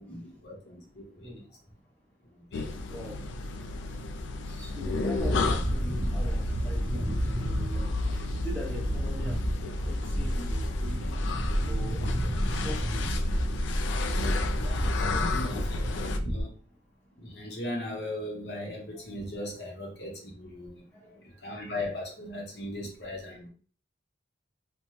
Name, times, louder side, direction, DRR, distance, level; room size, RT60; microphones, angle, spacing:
voice 1, 0.0-1.2 2.5-2.7 14.6-16.5 17.2-20.8 21.4-23.5, left 1 dB, 55° left, 0 dB, 0.8 m, -38 dB
sound 1, 2.5-16.2, left 3 dB, 75° left, 0.3 m, -33 dB
voice 2, 2.9-3.2 4.4-11.1 11.6-13.1 14.2-14.3 14.7-15.5 18.9-19.2 20.9-21.3, equal, 10° left, -2 dB, 0.7 m, -43 dB
sound 2, 5.2-16.4, equal, 40° right, 0.6 m, -30 dB
2.7 x 2.2 x 3.0 m, 0.41 s
head